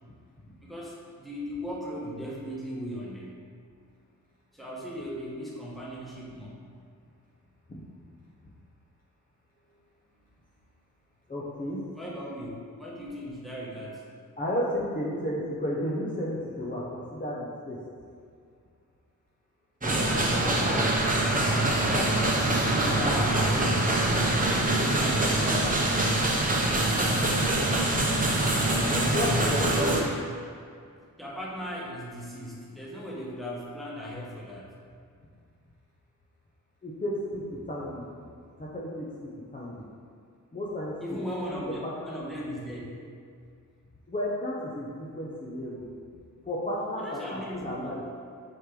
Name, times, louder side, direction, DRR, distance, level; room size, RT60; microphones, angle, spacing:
voice 1, 0.6-3.5 4.5-6.6 12.0-14.1 20.6-21.2 21.8-25.9 31.2-34.7 41.0-42.8 47.0-47.9, equal, ahead, -6 dB, 1.4 m, -38 dB
voice 2, 11.3-11.8 14.4-17.8 19.8-20.7 21.2-21.3 28.9-29.7 36.8-38.3 38.6-39.1 39.5-39.8 40.5-41.9 44.1-45.8 46.4-48.0, left 1 dB, 25° left, -7 dB, 0.9 m, -33 dB
sound 1, 19.8-30.0, right 1 dB, 25° right, 1.0 m, -24 dB
6.2 x 4.9 x 3.8 m, 2.3 s
wide cardioid pair, 90°, 35 cm